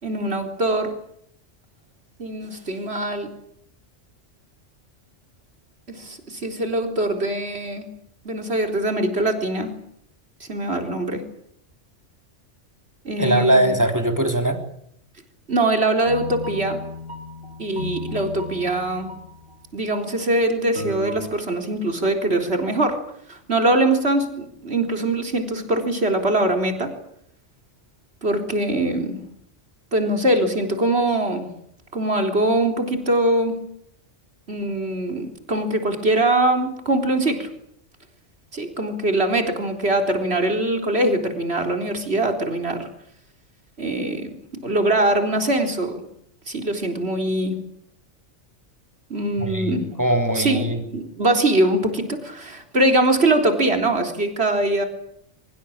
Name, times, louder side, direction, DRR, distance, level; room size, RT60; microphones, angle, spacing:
voice 1, 0.0-0.9 2.2-3.3 5.9-7.9 8.2-9.7 10.4-11.2 13.0-13.7 15.5-16.8 17.6-19.1 19.7-23.0 23.3-26.9 28.2-29.2 29.9-31.5 31.9-33.6 34.5-37.5 38.5-42.9 43.8-45.9 46.5-47.6 49.1-50.0 50.4-50.7 50.9-54.9, right 1 dB, 60° right, 5 dB, 4.2 m, -22 dB
voice 2, 13.2-14.6 49.4-50.8, right 1 dB, 15° right, 5 dB, 3.6 m, -21 dB
sound 1, 16.0-19.6 19.9-20.2 20.8-21.2, left 1 dB, 80° right, 5.4 m, -34 dB
24.0 x 23.5 x 8.8 m, 0.71 s
omnidirectional pair, 1.2 m